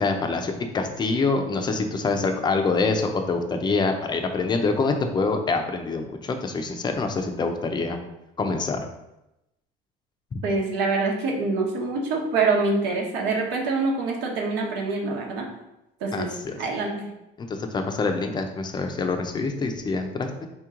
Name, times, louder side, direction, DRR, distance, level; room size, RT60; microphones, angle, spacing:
voice 1, 0.0-8.0 8.4-8.8 10.3-10.4 16.1-16.5 17.4-20.5, left 3 dB, 25° left, 5 dB, 0.5 m, -25 dB
voice 2, 10.4-15.5 16.0-16.3 16.6-17.0, right 3 dB, 80° right, 0 dB, 1.1 m, -25 dB
4.3 x 3.0 x 3.7 m, 0.89 s
cardioid pair, 130°, 18 cm